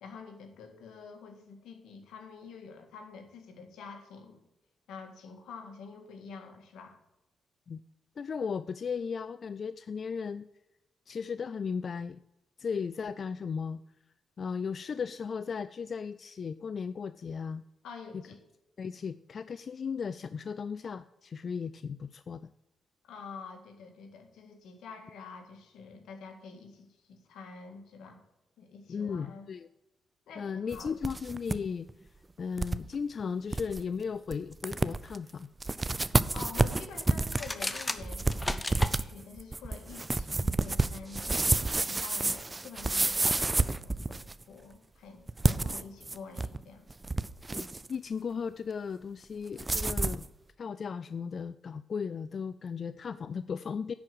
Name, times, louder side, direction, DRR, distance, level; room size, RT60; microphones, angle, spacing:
voice 1, 0.0-4.4 4.9-7.0 17.8-18.4 23.0-28.2 28.6-29.5 30.3-31.0 36.3-46.9, left 5 dB, 85° left, 4 dB, 1.8 m, -47 dB
voice 2, 8.2-10.5 11.1-12.2 12.6-13.8 14.4-17.6 18.1-18.2 18.8-22.5 28.9-29.7 30.4-31.9 32.4-35.5 47.5-50.3 50.6-53.9, left 6 dB, 55° left, 14 dB, 0.3 m, -36 dB
sound 1, 30.7-31.6 31.9-32.0 32.6-32.8 33.2-33.3 33.5-33.8 34.3-34.4 34.6-35.2 35.6-44.4 45.3-46.6 46.9-47.9 49.6-50.2, right 2 dB, 25° right, 0.5 m, -29 dB
sound 2, 37.2-38.9, left 2 dB, 15° left, 0.8 m, -34 dB
10.5 x 4.7 x 7.8 m, 0.94 s
cardioid pair, 70°, 0 cm